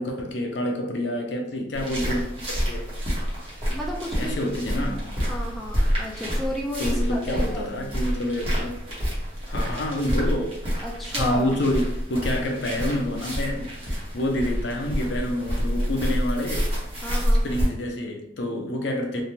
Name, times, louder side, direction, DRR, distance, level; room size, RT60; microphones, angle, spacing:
voice 1, 0.0-2.9 4.2-5.1 6.8-8.7 9.5-10.5 11.1-13.6 14.1-16.7 17.4-19.2, left 1 dB, 65° left, 2 dB, 0.5 m, -28 dB
sound 1, 1.7-17.6, equal, 30° right, 0.9 m, -28 dB
voice 2, 3.7-4.3 5.2-7.7 10.8-11.6 17.0-17.4, equal, ahead, -3 dB, 0.3 m, -33 dB
3.1 x 2.1 x 2.7 m, 0.79 s
head